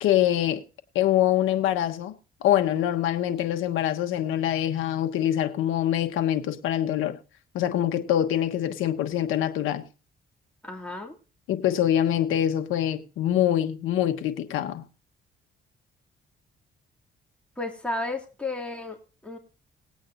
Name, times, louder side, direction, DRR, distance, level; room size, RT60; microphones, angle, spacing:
voice 1, 0.0-0.6 0.9-2.1 2.4-7.2 7.5-9.8 11.5-14.9, left 11 dB, 90° left, 1.2 m, -24 dB
voice 2, 10.6-11.2 17.6-19.4, left 2 dB, 5° left, 2.6 m, -33 dB
20.5 x 8.6 x 2.6 m
cardioid pair, 90°, 20 cm